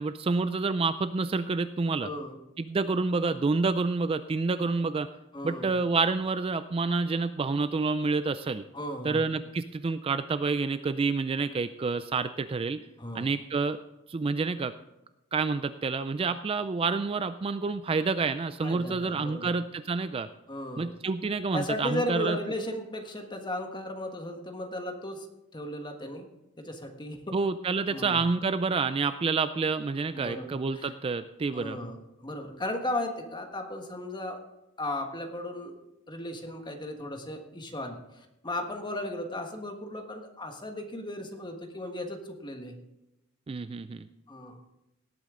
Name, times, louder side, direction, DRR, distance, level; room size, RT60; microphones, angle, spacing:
voice 1, 0.0-2.1 2.6-5.1 5.4-8.6 9.0-12.8 13.1-13.8 14.1-14.7 15.3-20.3 20.8-22.4 27.3-31.8 43.5-44.1, right 4 dB, 25° right, 12 dB, 0.3 m, -28 dB
voice 2, 2.0-2.4 5.3-5.7 8.7-9.3 13.0-13.3 18.6-19.5 20.5-21.0 21.5-25.3 25.5-26.2 26.6-27.4 27.9-28.2 30.1-30.9 31.5-34.4 34.8-35.8 36.1-42.8 44.3-44.6, left 1 dB, 20° left, 4 dB, 1.4 m, -36 dB
18.0 x 8.5 x 3.7 m, 0.94 s
head